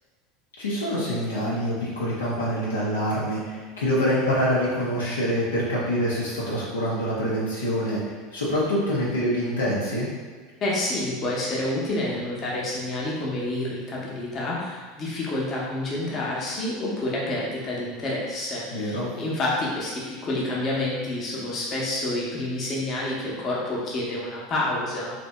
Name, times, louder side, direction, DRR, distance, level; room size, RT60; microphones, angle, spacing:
voice 1, 0.6-8.0 8.3-10.1 18.7-19.1, equal, 75° left, -7 dB, 0.7 m, -25 dB
voice 2, 10.6-25.1, left 1 dB, 35° left, -5 dB, 0.9 m, -28 dB
2.8 x 2.6 x 3.3 m, 1.5 s
figure-of-eight pair, 75°, 0 cm